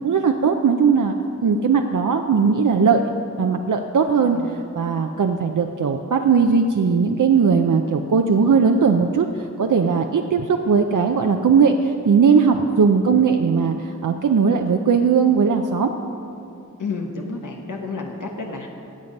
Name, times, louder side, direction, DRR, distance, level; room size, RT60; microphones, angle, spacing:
voice 1, 0.0-1.1 1.4-3.0 3.4-4.4 4.7-15.9, right 5 dB, 80° right, 4 dB, 0.6 m, -18 dB
voice 2, 16.8-18.7, left 4 dB, 90° left, 1 dB, 1.1 m, -30 dB
17.5 x 7.5 x 5.3 m, 2.6 s
wide cardioid pair, 65°, 31 cm